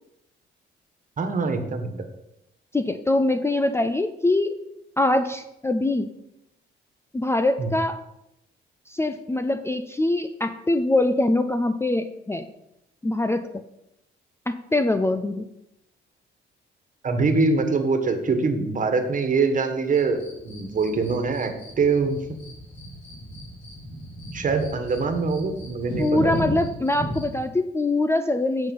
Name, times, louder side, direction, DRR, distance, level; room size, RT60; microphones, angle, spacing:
voice 1, 1.2-2.0 7.6-7.7 17.0-22.2 24.3-26.3, right 4 dB, 40° right, 6 dB, 1.6 m, -24 dB
voice 2, 2.7-4.6 5.0-6.1 7.1-8.0 8.9-12.5 13.0-13.6 14.5-15.4 26.0-28.7, left 2 dB, 15° left, 9 dB, 0.5 m, -23 dB
sound 1, 19.9-27.4, equal, 65° left, 3.7 m, -35 dB
8.9 x 5.8 x 5.5 m, 0.85 s
cardioid pair, 90°, 20 cm